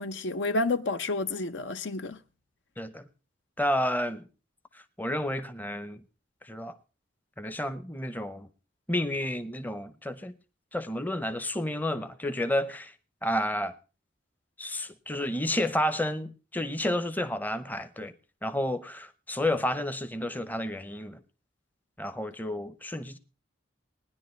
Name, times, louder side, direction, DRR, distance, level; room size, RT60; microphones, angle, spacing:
voice 1, 0.0-2.2, left 2 dB, 75° left, 0.7 m, -30 dB
voice 2, 2.8-3.1 3.6-4.3 4.7-6.0 6.4-6.8 7.4-8.5 8.9-10.3 10.7-12.9 13.2-13.7 14.6-18.1 18.4-21.2 22.0-23.2, left 1 dB, 10° left, 0.7 m, -31 dB
19.5 x 10.0 x 3.1 m
head